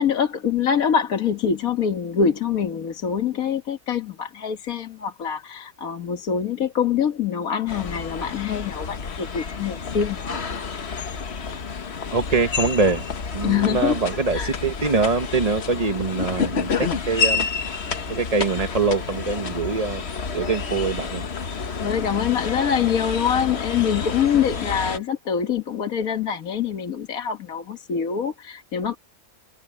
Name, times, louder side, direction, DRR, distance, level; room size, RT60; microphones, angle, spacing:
voice 1, 0.0-10.4 13.4-14.0 14.3-14.6 21.8-29.0, left 7 dB, 60° left, 1.7 m, -24 dB
sound 1, 7.7-25.0, left 5 dB, 45° left, 1.4 m, -29 dB
voice 2, 12.1-13.0 13.3-17.5 18.1-20.0 20.3-21.2, right 4 dB, 30° right, 1.0 m, -23 dB
omnidirectional pair, 1.7 m